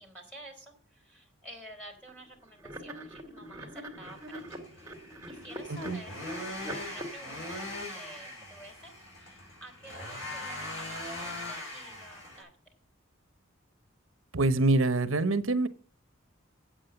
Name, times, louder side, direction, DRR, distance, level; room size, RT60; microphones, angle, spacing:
voice 1, 0.0-6.2 6.5-7.6 7.9-12.5, right 1 dB, 5° left, -1 dB, 3.3 m, -50 dB
sound 1, 2.0-2.2 2.6-7.1, equal, 15° right, 2.2 m, -42 dB
sound 2, 4.0-12.4, left 1 dB, 65° left, 5.9 m, -41 dB
voice 2, 14.3-15.7, right 2 dB, 75° right, 13 dB, 1.0 m, -25 dB
8.4 x 7.6 x 7.8 m, 0.43 s
head